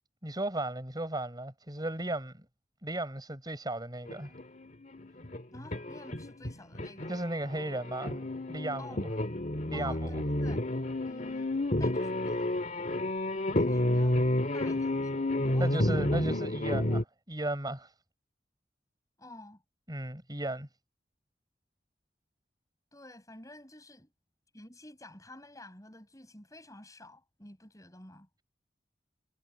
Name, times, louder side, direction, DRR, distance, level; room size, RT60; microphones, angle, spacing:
voice 1, 0.2-2.4 2.8-4.3 7.1-8.2 8.5-9.1 9.7-10.2 15.6-17.9 19.9-20.7, right 1 dB, 25° right, 4.7 m, -35 dB
sound 1, 4.1-7.2 7.5-17.0, left 1 dB, 45° left, 2.3 m, -30 dB
voice 2, 5.5-7.1 8.8-9.0 9.7-10.7 11.0-11.5 11.8-12.5 13.5-14.2 14.5-16.2 19.2-19.6 22.9-24.1 24.5-28.3, left 1 dB, 20° left, 8.0 m, -50 dB
head